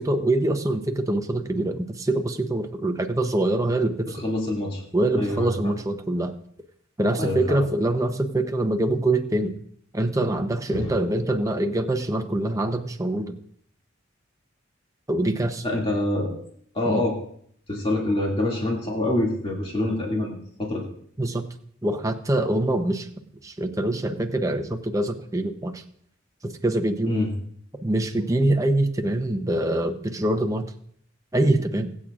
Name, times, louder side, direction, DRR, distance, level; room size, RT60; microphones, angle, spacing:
voice 1, 0.0-4.2 4.9-6.3 7.0-9.6 9.9-13.4 15.1-15.6 16.9-17.0 21.2-21.4 21.8-23.1 23.4-25.8 26.4-27.1 27.8-30.6 31.3-31.9, right 1 dB, 15° right, 6 dB, 0.8 m, -24 dB
voice 2, 4.1-4.8 5.2-5.7 7.2-7.6 10.7-10.9 15.6-16.3 16.7-17.1 17.7-20.8 27.0-27.3, left 1 dB, 25° left, -3 dB, 2.3 m, -26 dB
22.0 x 8.5 x 2.5 m, 0.63 s
head